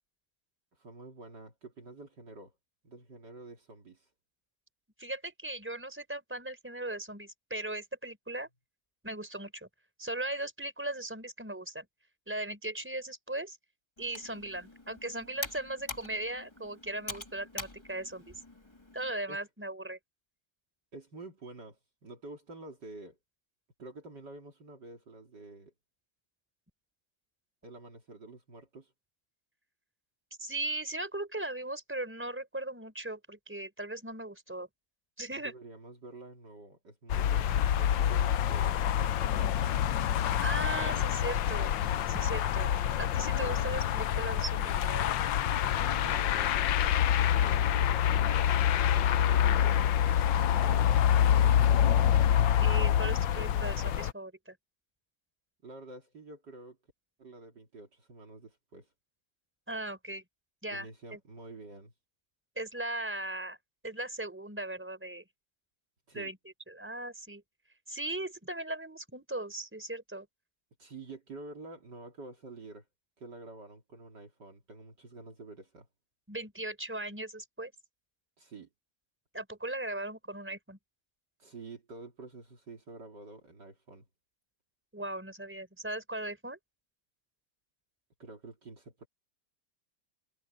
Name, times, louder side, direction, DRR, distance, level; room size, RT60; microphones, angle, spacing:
voice 1, 0.7-2.5 2.8-4.1 19.3-19.4 20.9-23.2 23.8-25.7 27.6-28.9 35.4-39.6 45.7-50.0 50.3-51.9 55.6-56.8 57.2-58.9 60.7-61.9 66.1-66.3 70.8-72.8 73.2-75.9 78.4-78.7 81.4-84.0 88.2-89.1, right 2 dB, 55° right, 3.5 m, -49 dB
voice 2, 5.0-8.5 9.0-9.7 10.0-11.9 12.3-13.6 14.0-18.3 18.9-20.0 30.4-34.7 35.2-35.5 40.4-41.7 42.1-42.7 43.0-45.1 52.6-54.5 59.7-60.2 60.6-60.9 61.1-61.2 62.6-63.6 63.8-65.2 66.1-66.4 66.7-67.4 67.9-70.3 76.3-77.7 79.3-80.8 84.9-86.6, right 1 dB, 5° right, 4.3 m, -38 dB
Computer keyboard, 14.0-19.1, left 2 dB, 15° left, 2.5 m, -45 dB
sound 1, 37.1-54.1, left 10 dB, 70° left, 1.4 m, -26 dB
omnidirectional pair, 2.2 m